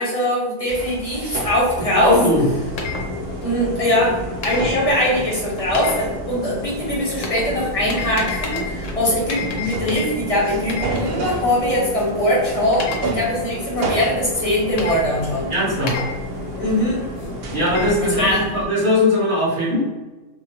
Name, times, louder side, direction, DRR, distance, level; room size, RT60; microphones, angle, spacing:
voice 1, 0.0-2.2 3.4-4.2 4.4-15.5 16.6-17.0 18.0-18.5, left 1 dB, 30° left, -5 dB, 0.9 m, -21 dB
sound 1, 0.7-18.4, right 2 dB, 65° right, 0.6 m, -33 dB
voice 2, 1.9-2.5 15.5-15.9 17.5-19.8, left 1 dB, 40° right, -8 dB, 1.5 m, -19 dB
sound 2, 2.2-18.6, left 2 dB, 70° left, 1.0 m, -30 dB
3.5 x 2.1 x 2.9 m, 1.2 s
omnidirectional pair, 1.4 m